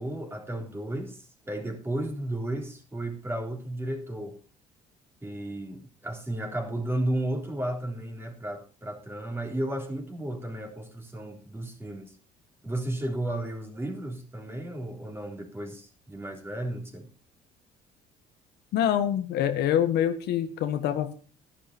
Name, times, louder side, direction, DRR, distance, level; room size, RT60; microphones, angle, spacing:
voice 1, 0.0-4.4 5.2-12.1 12.6-17.1, right 1 dB, 15° right, 3.6 m, -33 dB
voice 2, 18.7-21.1, left 10 dB, 80° left, 1.5 m, -25 dB
12.5 x 11.5 x 4.4 m
cardioid pair, 110°, 17 cm